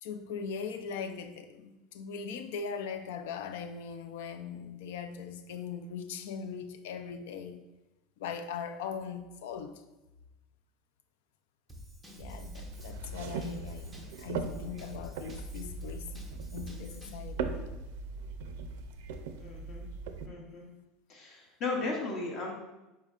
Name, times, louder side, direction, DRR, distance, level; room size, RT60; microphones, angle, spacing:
voice 1, 0.0-7.6 8.2-9.8 12.2-17.5, left 6 dB, 85° left, 0.4 m, -40 dB
Drum kit / Drum, 11.7-17.3, equal, 5° right, 0.5 m, -50 dB
sound 1, 12.2-20.3, right 4 dB, 85° right, 0.4 m, -40 dB
voice 2, 19.4-19.8 20.3-20.7 21.1-22.5, left 3 dB, 35° left, 0.8 m, -36 dB
5.0 x 4.3 x 2.4 m
cardioid pair, 180°, 0 cm